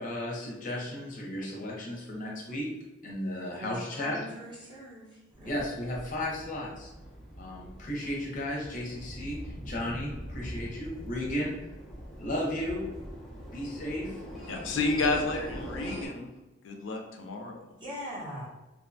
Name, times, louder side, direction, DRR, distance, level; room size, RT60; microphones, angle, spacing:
voice 1, 0.0-2.7 3.0-4.2 5.4-6.9 7.4-11.5 12.2-12.8 13.5-14.2, left 1 dB, 45° left, -3 dB, 0.7 m, -34 dB
voice 2, 3.6-5.6 17.8-18.4, equal, 25° right, -6 dB, 0.8 m, -41 dB
sound 1, 5.3-16.1, equal, ahead, 0.6 m, -43 dB
voice 3, 14.5-16.3 16.6-17.7, left 3 dB, 75° left, 2 dB, 0.4 m, -31 dB
2.6 x 2.2 x 2.6 m, 1.0 s
head